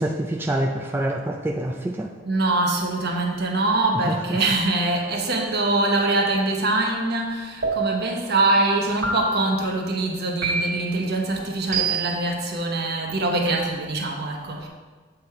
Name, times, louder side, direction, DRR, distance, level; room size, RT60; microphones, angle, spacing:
voice 1, 0.0-2.1 4.1-4.2, right 1 dB, 10° right, 1 dB, 0.3 m, -26 dB
voice 2, 2.2-14.7, right 2 dB, 60° right, 1 dB, 1.0 m, -23 dB
sound 1, 7.6-8.2 9.0-9.6 10.4-11.0 11.7-12.3, right 4 dB, 75° right, 1.7 m, -26 dB
7.8 x 3.9 x 4.3 m, 1.4 s
head